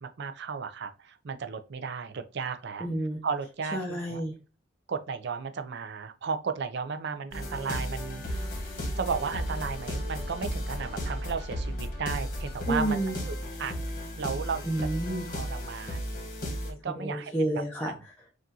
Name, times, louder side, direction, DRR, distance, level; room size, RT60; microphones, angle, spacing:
voice 1, 0.0-2.9 3.2-4.2 4.9-8.5 9.0-13.0 13.3-13.7 14.2-14.7 15.3-16.0 16.6-17.9, right 5 dB, 60° right, 0.5 m, -34 dB
voice 2, 2.8-3.2 3.7-4.4 12.7-13.2 14.6-15.3 16.9-18.2, right 1 dB, 10° left, 0.7 m, -30 dB
sound 1, 7.3-16.7, equal, 45° left, 1.3 m, -34 dB
5.9 x 2.5 x 2.7 m
head